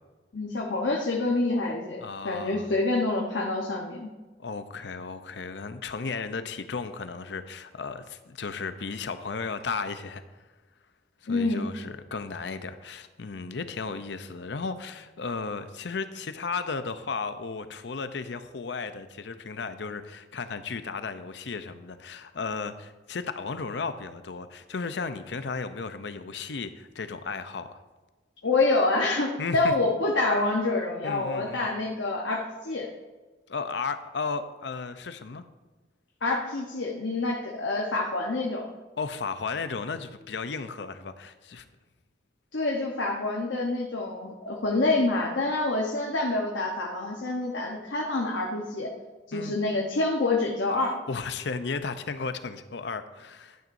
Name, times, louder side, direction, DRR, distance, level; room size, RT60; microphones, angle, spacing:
voice 1, 0.3-4.1 11.3-11.6 28.4-32.9 36.2-38.7 42.5-48.9 49.3-51.0, left 2 dB, 90° left, -1 dB, 1.0 m, -27 dB
voice 2, 2.0-2.7 4.4-10.2 11.2-27.8 29.4-29.7 31.0-31.7 33.5-35.4 39.0-41.6 49.3-49.5 51.1-53.6, left 4 dB, 65° left, 11 dB, 0.6 m, -34 dB
11.5 x 9.2 x 2.6 m, 1.2 s
head